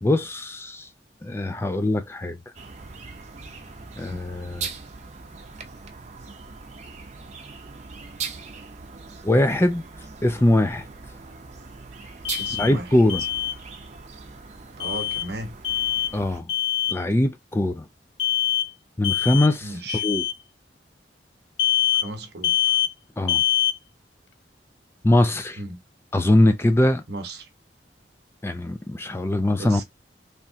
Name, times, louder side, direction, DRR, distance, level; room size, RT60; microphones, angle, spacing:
voice 1, 0.0-0.9 1.2-2.4 4.0-4.7 9.2-9.8 10.2-10.9 12.6-13.2 16.1-16.5 16.9-17.8 19.0-19.7 20.0-20.2 23.2-23.4 25.0-25.6 26.1-27.0 28.4-29.8, left 1 dB, 15° left, 0.4 m, -21 dB
sound 1, 2.5-16.4, right 5 dB, 40° right, 0.7 m, -40 dB
Alarm, 12.2-12.7 13.1-13.5 14.8-15.3 15.6-16.1 16.5-17.0 18.2-18.7 19.0-19.5 19.9-20.3 21.6-22.1 22.4-22.9 23.3-23.8, left 12 dB, 80° left, 0.4 m, -24 dB
voice 2, 12.4-13.0 14.8-15.5 19.6-20.0 21.9-22.8 25.6-25.8 27.1-27.5 29.5-29.8, right 2 dB, 65° right, 0.9 m, -36 dB
3.4 x 3.0 x 2.7 m
head